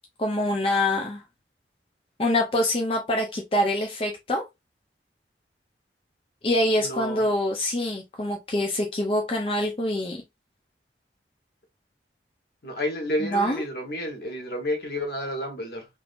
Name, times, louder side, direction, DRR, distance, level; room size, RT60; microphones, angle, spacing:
voice 1, 0.2-1.2 2.2-4.4 6.4-10.2 13.2-13.6, left 1 dB, 30° left, 0.5 m, -25 dB
voice 2, 6.8-7.2 12.6-15.9, equal, 65° left, 1.1 m, -30 dB
3.5 x 2.7 x 2.4 m
head